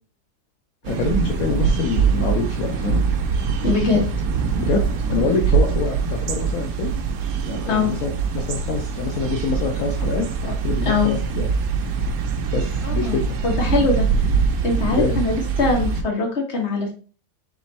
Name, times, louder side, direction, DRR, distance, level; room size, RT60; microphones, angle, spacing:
voice 1, 0.8-3.0 4.6-7.0 7.5-11.5 12.5-13.4 14.9-15.2, left 4 dB, 80° left, 2 dB, 1.1 m, -26 dB
sound 1, 0.8-16.0, right 5 dB, 90° right, 1.1 m, -23 dB
voice 2, 3.6-4.0 7.7-7.9 10.8-11.1 12.8-14.3 14.6-16.9, left 4 dB, 50° left, 0 dB, 1.5 m, -22 dB
3.5 x 3.2 x 4.1 m, 0.38 s
omnidirectional pair, 1.5 m